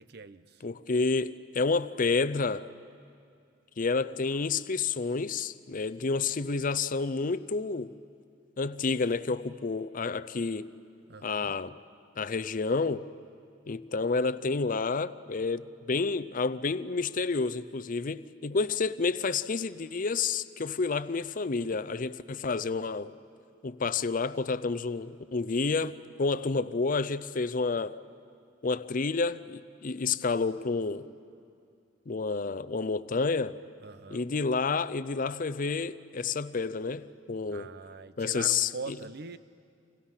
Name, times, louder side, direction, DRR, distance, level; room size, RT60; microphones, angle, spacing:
voice 1, 0.0-0.7 11.1-11.6 33.8-34.3 37.5-39.4, right 4 dB, 55° right, 0.7 m, -43 dB
voice 2, 0.6-2.7 3.8-7.9 8.6-10.7 11.2-11.7 12.2-13.0 13.7-23.1 23.6-28.0 28.6-31.1 32.1-33.6 34.1-37.7 38.2-38.7, left 4 dB, 45° left, 0.6 m, -29 dB
30.0 x 26.0 x 5.8 m
head